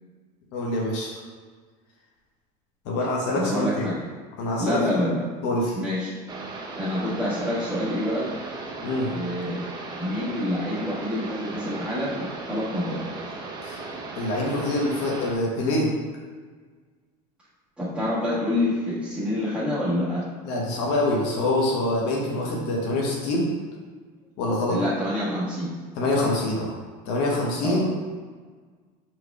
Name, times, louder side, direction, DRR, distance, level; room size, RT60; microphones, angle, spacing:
voice 1, 0.5-1.1 2.8-3.9 4.4-4.8 5.4-5.8 8.8-9.2 13.6-13.8 14.2-15.9 20.4-23.5 24.4-24.8 26.0-26.7 27.1-27.9, left 1 dB, 65° left, -2 dB, 1.0 m, -25 dB
voice 2, 3.3-4.0 4.6-5.2 5.7-6.1 6.8-8.3 9.1-9.6 10.0-13.4 17.8-20.2 24.7-25.7 27.6-27.8, left 1 dB, 5° right, -14 dB, 1.2 m, -27 dB
sound 1, 6.3-15.4, right 3 dB, 25° right, 0.5 m, -37 dB
4.8 x 4.4 x 2.3 m, 1.5 s
cardioid pair, 145°, 19 cm